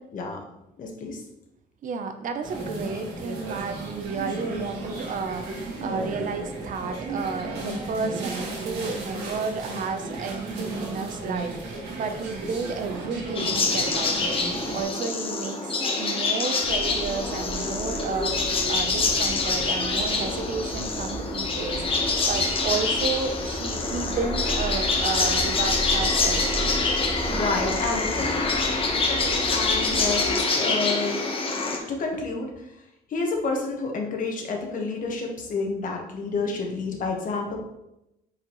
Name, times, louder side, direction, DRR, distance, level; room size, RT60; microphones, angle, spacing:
voice 1, 0.8-1.2 27.3-28.3 29.1-31.1 31.7-32.5 33.1-37.6, left 3 dB, 50° left, 1 dB, 1.5 m, -29 dB
voice 2, 1.8-26.6 27.3-27.8, right 5 dB, 50° right, 7 dB, 0.7 m, -32 dB
sound 1, 2.4-14.8, right 2 dB, 85° right, 1.9 m, -34 dB
sound 2, 13.4-31.8, left 3 dB, 35° left, 1.2 m, -25 dB
sound 3, 16.6-30.4, right 1 dB, 5° right, 0.6 m, -36 dB
8.3 x 4.8 x 3.1 m, 0.88 s
cardioid pair, 135°, 17 cm